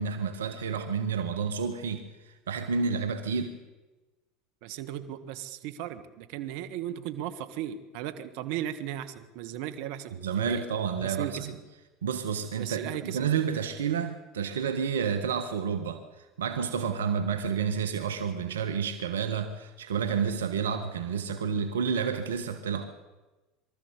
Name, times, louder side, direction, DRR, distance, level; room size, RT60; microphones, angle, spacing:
voice 1, 0.0-3.5 10.2-11.5 12.0-22.9, right 6 dB, 90° right, 1.3 m, -30 dB
voice 2, 4.6-10.7 11.0-11.5 12.5-13.3, right 11 dB, 70° right, 1.6 m, -36 dB
23.5 x 13.5 x 8.2 m
hypercardioid pair, 85°, 0 cm